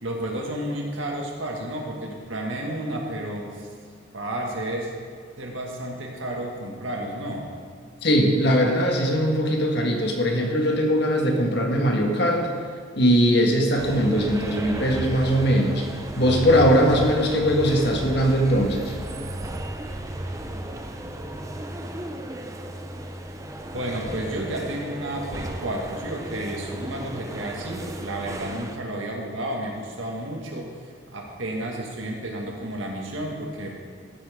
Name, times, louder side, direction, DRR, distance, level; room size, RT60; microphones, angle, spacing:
voice 1, 0.0-3.7 4.1-4.9 5.4-7.5 23.7-30.7 31.1-33.8, right 1 dB, 80° right, 0 dB, 1.8 m, -31 dB
voice 2, 8.0-12.5 12.9-15.8 16.2-18.9, equal, 55° left, 1 dB, 1.5 m, -20 dB
sound 1, 13.8-28.8, right 1 dB, 15° right, 0.6 m, -34 dB
14.5 x 8.6 x 3.6 m, 2.1 s
head